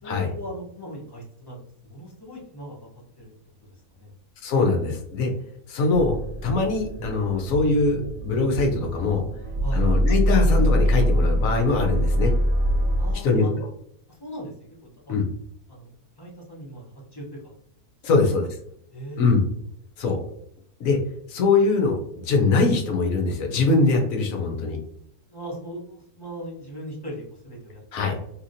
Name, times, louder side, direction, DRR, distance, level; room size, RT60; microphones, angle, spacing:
voice 1, 0.0-1.6 1.8-2.8 3.2-3.3 3.6-4.1 9.6-9.9 13.0-13.6 14.1-15.2 15.7-17.5 18.1-18.5 18.9-19.4 25.3-27.8 28.1-28.3, equal, 20° left, -5 dB, 0.7 m, -39 dB
voice 2, 4.4-5.3 5.7-6.2 6.4-9.2 9.7-12.3 13.2-13.5 15.1-15.2 18.0-18.5 19.2-19.4 20.0-20.2 20.8-21.0 21.3-24.8 27.9-28.2, left 3 dB, 65° left, 2 dB, 1.0 m, -22 dB
sound 1, 5.9-13.2, equal, 80° right, 1.1 m, -24 dB
2.9 x 2.8 x 2.5 m, 0.72 s
omnidirectional pair, 1.6 m